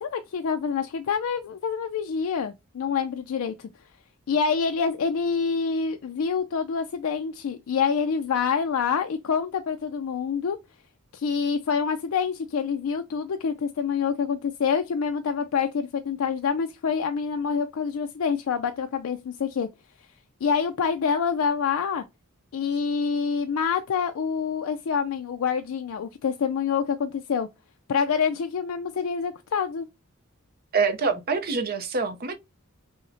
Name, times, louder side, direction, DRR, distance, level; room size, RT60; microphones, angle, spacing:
voice 1, 0.0-3.7 4.3-10.6 11.1-19.7 20.4-22.0 22.5-27.5 27.9-29.9, left 6 dB, 70° left, 0.4 m, -26 dB
voice 2, 30.7-32.4, right 4 dB, 45° right, 0.5 m, -25 dB
5.6 x 2.1 x 2.6 m
head